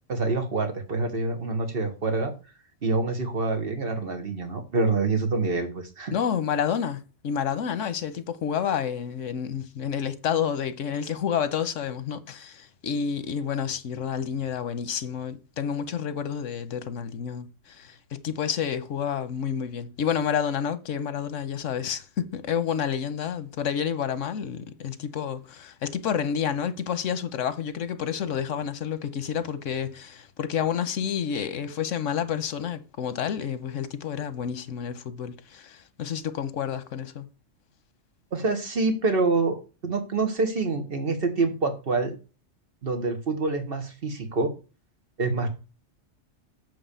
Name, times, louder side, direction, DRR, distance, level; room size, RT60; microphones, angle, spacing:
voice 1, 0.1-2.3 2.8-6.1 38.3-42.1 42.8-44.5 45.2-45.5, right 3 dB, 50° right, 1.7 m, -26 dB
voice 2, 6.1-37.3, left 8 dB, 85° left, 1.2 m, -29 dB
8.3 x 3.8 x 6.8 m
omnidirectional pair, 1.3 m